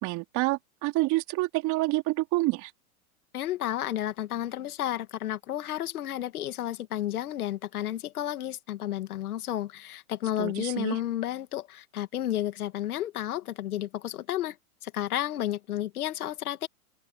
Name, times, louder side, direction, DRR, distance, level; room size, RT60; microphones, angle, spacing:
voice 1, 0.0-2.7 10.4-11.0, right 20 dB, 40° right, 4.1 m, -28 dB
voice 2, 3.3-14.6 14.8-16.7, left 12 dB, 75° left, 2.2 m, -32 dB
hypercardioid pair, 125°, 44 cm